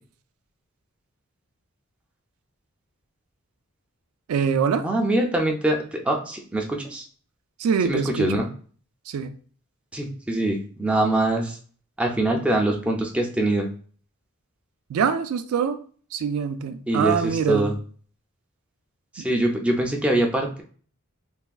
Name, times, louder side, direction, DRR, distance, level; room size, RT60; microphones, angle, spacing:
voice 1, 4.3-4.8 7.6-8.3 9.1-9.3 14.9-15.8 16.1-17.6 19.2-19.3, right 6 dB, 90° right, 9 dB, 0.3 m, -24 dB
voice 2, 4.8-7.0 7.8-8.5 9.9-11.6 12.0-13.7 16.9-17.8 19.1-20.6, right 1 dB, 5° right, 1 dB, 0.3 m, -23 dB
3.4 x 2.1 x 2.3 m, 0.44 s
head